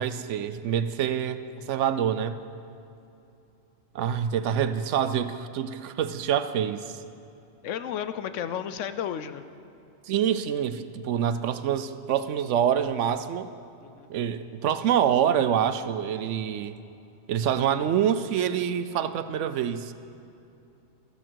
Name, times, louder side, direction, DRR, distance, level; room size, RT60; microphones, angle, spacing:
voice 1, 0.0-1.4 1.7-2.4 3.9-7.0 10.1-13.5 14.1-16.7 17.3-19.9, right 9 dB, 70° right, 12 dB, 0.9 m, -26 dB
voice 2, 7.6-9.4 13.8-14.1, left 9 dB, 75° left, 12 dB, 0.9 m, -33 dB
14.5 x 13.5 x 4.6 m, 2.8 s
omnidirectional pair, 1.3 m